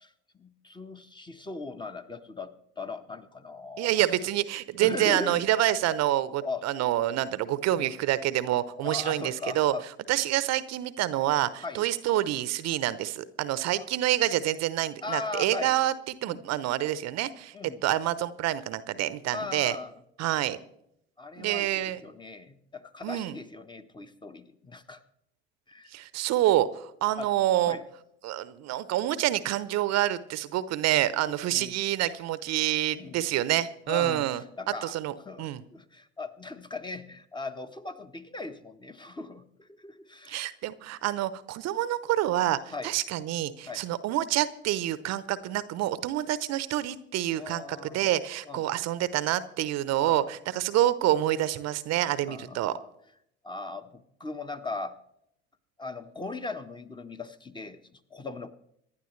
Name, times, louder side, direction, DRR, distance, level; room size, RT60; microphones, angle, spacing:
voice 1, 0.0-3.9 4.8-5.4 6.4-6.6 7.8-7.9 8.8-9.8 11.6-11.9 13.8-13.9 15.0-15.7 16.2-16.4 17.5-17.8 19.3-19.9 21.2-25.0 25.7-25.9 27.2-27.3 27.7-27.8 31.4-31.7 33.0-33.2 33.9-34.9 35.2-40.5 42.7-42.9 43.6-43.8 47.3-48.1 48.4-48.7 50.0-50.3 52.3-52.8 53.4-55.0 55.8-58.5, left 3 dB, 15° left, 8 dB, 1.2 m, -39 dB
voice 2, 3.8-9.7 10.1-17.5 17.8-19.8 20.2-20.6 21.4-22.0 23.0-23.4 25.9-27.8 28.2-34.4 34.8-35.6 40.3-52.7, right 13 dB, 55° right, 16 dB, 0.8 m, -27 dB
25.0 x 11.5 x 3.2 m, 0.76 s
figure-of-eight pair, 60°, 32 cm